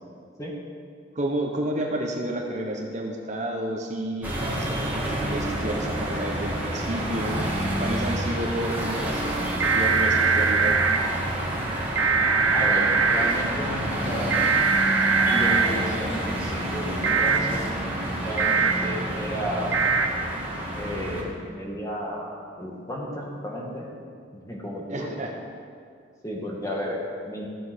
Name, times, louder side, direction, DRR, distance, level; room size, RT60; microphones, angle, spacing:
voice 1, 1.1-7.3 7.8-9.3 9.7-10.7 24.9-25.3, right 1 dB, 40° right, 1 dB, 1.1 m, -30 dB
sound 1, 4.2-21.2, right 1 dB, 10° right, 2.0 m, -29 dB
sound 2, 9.6-11.0 12.0-13.3 14.3-15.7 17.0-17.4 18.4-18.7 19.7-20.1, right 5 dB, 70° right, 1.0 m, -21 dB
voice 2, 12.5-14.4 15.3-17.7 18.2-19.8 20.7-23.9 24.3-25.1 26.2-27.0 27.2-27.5, equal, 15° left, -3 dB, 2.1 m, -33 dB
14.5 x 7.7 x 6.4 m, 2.2 s
head